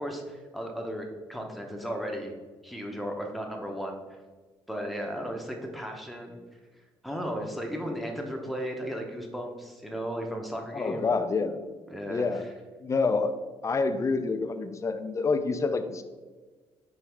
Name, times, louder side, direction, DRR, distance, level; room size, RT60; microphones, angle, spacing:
voice 1, 0.0-2.3 2.6-4.2 4.7-6.4 7.0-11.1 11.9-12.5, equal, ahead, 2 dB, 0.8 m, -35 dB
voice 2, 10.7-11.6 12.1-12.4 12.8-13.3 13.6-16.0, left 4 dB, 30° left, 9 dB, 0.4 m, -27 dB
4.7 x 3.1 x 3.5 m, 1.4 s
cardioid pair, 80°, 10 cm